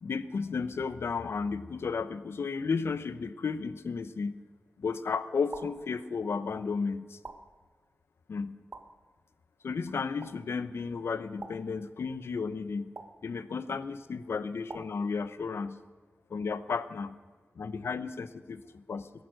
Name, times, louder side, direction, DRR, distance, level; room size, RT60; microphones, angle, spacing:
voice 1, 0.0-4.4 4.8-7.2 8.3-8.6 9.6-12.9 13.2-15.8 16.3-17.2 17.6-19.1, left 5 dB, 90° left, 13 dB, 0.8 m, -33 dB
sound 1, 5.5-5.9 7.2-7.6 8.7-9.1 10.2-10.5 11.4-11.8 13.0-13.3 14.7-15.1, right 3 dB, 55° right, 1.2 m, -46 dB
18.0 x 11.0 x 6.4 m, 1.5 s
wide cardioid pair, 120°, 4 cm